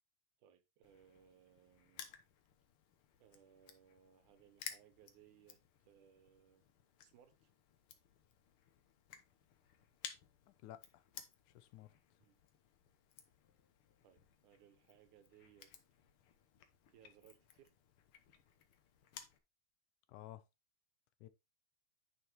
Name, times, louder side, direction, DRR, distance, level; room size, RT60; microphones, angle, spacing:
voice 1, 0.4-2.1 3.2-5.6 5.9-6.6 7.0-7.5 12.2-12.4 14.0-15.7 16.9-17.7, right 9 dB, 80° right, 2.5 m, -66 dB
Crushing, 0.8-19.4, left 8 dB, 65° left, 1.5 m, -57 dB
voice 2, 10.6-11.0 11.5-11.9 20.1-20.4 21.2-21.3, left 13 dB, 90° left, 2.2 m, -53 dB
9.7 x 5.7 x 3.0 m
omnidirectional pair, 3.5 m